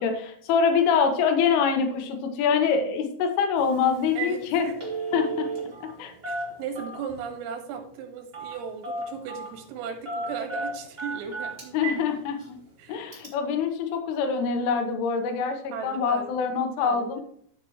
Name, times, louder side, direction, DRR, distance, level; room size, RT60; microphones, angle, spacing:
voice 1, 0.0-4.7 5.1-5.5 5.8-6.1 11.7-12.4 12.9-17.2, left 6 dB, 80° left, 5 dB, 3.6 m, -25 dB
Telephone, 3.6-3.7 4.0-4.4 4.6-5.9 6.2-7.2 8.3-8.6 8.8-9.5 10.0-12.0 12.4-12.5 13.1-13.3, right 3 dB, 20° right, 1.8 m, -33 dB
voice 2, 4.2-4.8 6.3-11.9 12.8-13.0 15.7-16.3 16.8-17.2, right 6 dB, 85° right, 4 dB, 4.2 m, -37 dB
15.0 x 6.0 x 3.0 m, 0.63 s
omnidirectional pair, 5.9 m